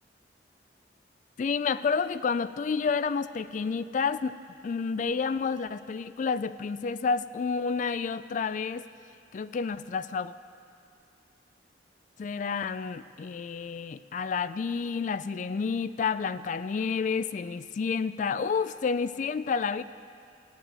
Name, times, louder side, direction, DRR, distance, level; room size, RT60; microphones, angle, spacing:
voice 1, 1.4-4.4 4.6-8.9 9.3-10.3 12.2-19.8, left 5 dB, 45° left, 14 dB, 0.3 m, -30 dB
14.5 x 7.6 x 9.1 m, 2.3 s
head